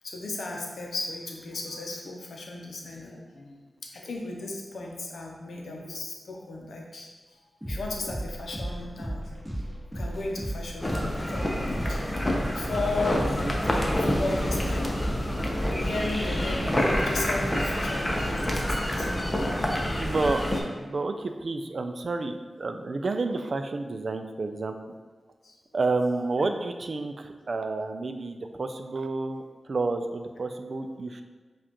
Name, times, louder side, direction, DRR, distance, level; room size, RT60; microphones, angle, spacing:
voice 1, 0.0-3.6 3.8-12.0 12.5-15.3 15.6-19.1 19.9-20.0 25.4-25.6, left 2 dB, 90° left, 0 dB, 0.6 m, -36 dB
sound 1, 7.6-17.2, right 1 dB, 5° right, 1.5 m, -36 dB
sound 2, 10.8-20.6, left 1 dB, 20° left, 0.7 m, -27 dB
voice 2, 13.1-13.5 20.0-24.7 25.7-31.2, right 3 dB, 55° right, 7 dB, 0.3 m, -30 dB
7.1 x 2.4 x 2.9 m, 1.3 s
wide cardioid pair, 70°, 0 cm